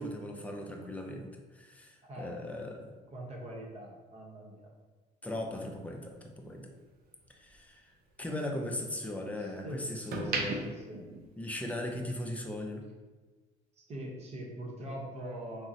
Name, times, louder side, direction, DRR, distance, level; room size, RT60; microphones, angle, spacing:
voice 1, 0.0-2.9 5.2-6.7 7.4-7.9 8.2-10.7 11.4-12.9, left 1 dB, 10° left, 1 dB, 0.4 m, -38 dB
voice 2, 2.0-2.5 3.0-4.7 8.2-8.7 9.0-11.1 11.6-11.7 13.7-15.7, right 1 dB, 40° right, -2 dB, 0.8 m, -43 dB
sound 1, 5.3-7.6 8.0-9.4 9.9-12.0 12.3-12.6, right 3 dB, 60° right, 0.5 m, -39 dB
3.7 x 2.0 x 2.6 m, 1.3 s
cardioid pair, 110°, 17 cm